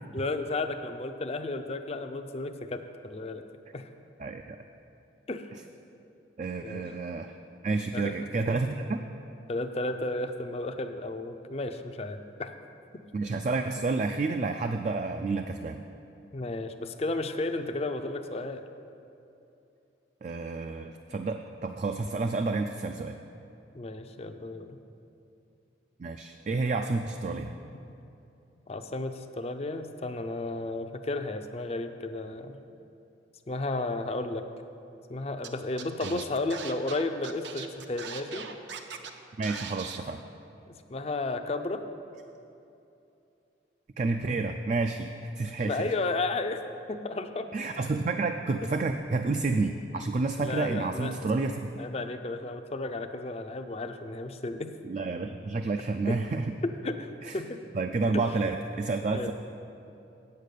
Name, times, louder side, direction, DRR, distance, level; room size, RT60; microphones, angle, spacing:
voice 1, 0.1-3.4 3.7-3.9 5.3-5.5 6.6-6.8 7.9-8.4 9.5-12.5 16.3-18.6 23.7-24.8 28.7-32.6 33.5-34.4 35.1-38.5 40.7-41.8 45.6-46.6 46.9-47.5 50.4-51.1 51.8-54.7 56.1-56.2 56.6-57.6 58.1-58.2 59.1-59.3, left 2 dB, 35° left, 8 dB, 0.5 m, -33 dB
voice 2, 4.2-4.6 6.4-7.4 7.6-9.0 13.1-15.8 20.2-23.2 26.0-27.5 36.0-36.2 39.4-40.2 44.0-45.9 47.5-51.8 54.8-56.5 57.2-57.4 57.7-59.3, right 3 dB, 40° right, 6 dB, 0.3 m, -30 dB
Scratching (performance technique), 35.4-35.5 35.8-39.1 39.4-40.0, right 6 dB, 70° right, 0.7 m, -40 dB
8.4 x 6.6 x 8.3 m, 2.8 s
head